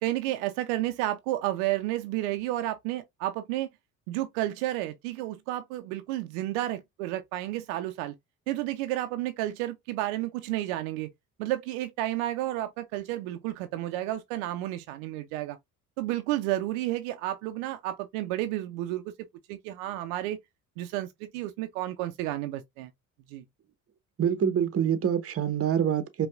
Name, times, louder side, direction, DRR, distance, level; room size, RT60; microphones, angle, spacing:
voice 1, 0.0-3.7 4.1-8.1 8.5-11.1 11.4-15.6 16.0-19.1 19.5-20.4 20.8-22.9 23.3-23.4, right 15 dB, 70° right, 0.6 m, -31 dB
voice 2, 24.2-26.3, right 8 dB, 35° right, 0.9 m, -26 dB
5.2 x 2.4 x 2.3 m
hypercardioid pair, 55°, 42 cm